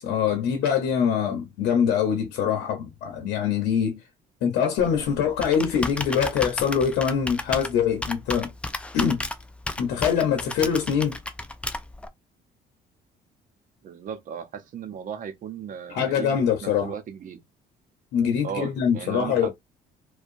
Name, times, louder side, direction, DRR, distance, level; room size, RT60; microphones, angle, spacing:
voice 1, 0.0-4.0 4.4-8.5 8.9-9.2 9.8-11.2 15.9-16.9 18.1-19.5, left 7 dB, 90° left, 0.8 m, -24 dB
Computer keyboard, 4.8-12.1, left 2 dB, 5° left, 0.3 m, -33 dB
voice 2, 13.8-17.4 18.4-19.5, right 7 dB, 50° right, 0.7 m, -36 dB
2.7 x 2.2 x 2.5 m
cardioid pair, 110°, 17 cm